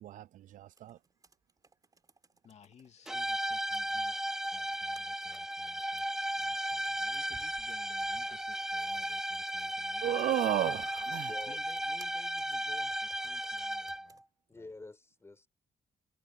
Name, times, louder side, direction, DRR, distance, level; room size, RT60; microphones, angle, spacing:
voice 1, 0.5-1.0 10.0-11.3, right 13 dB, 75° right, 0.4 m, -32 dB
Computer keyboard, 0.7-14.2, right 3 dB, 30° right, 4.2 m, -63 dB
voice 2, 2.4-4.2 4.5-6.1 6.4-10.2 11.5-14.2 14.5-14.7, left 7 dB, 55° left, 2.2 m, -57 dB
sound 1, 3.1-14.2, right 1 dB, 5° right, 0.5 m, -35 dB
voice 3, 11.3-11.6 14.5-15.5, left 2 dB, 20° left, 4.6 m, -48 dB
cardioid pair, 105°, 13 cm